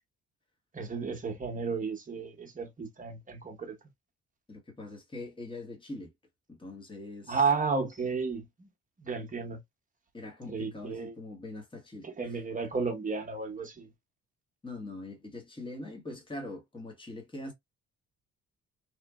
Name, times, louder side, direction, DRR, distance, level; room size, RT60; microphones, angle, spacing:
voice 1, 0.7-3.8 7.3-8.7 9.0-9.6 10.5-11.1 12.0-13.9, right 5 dB, 25° right, 1.0 m, -33 dB
voice 2, 4.5-6.1 6.5-7.4 10.1-12.4 14.6-17.5, left 2 dB, 15° left, 1.2 m, -42 dB
3.0 x 2.5 x 2.2 m
cardioid pair, 90°, 30 cm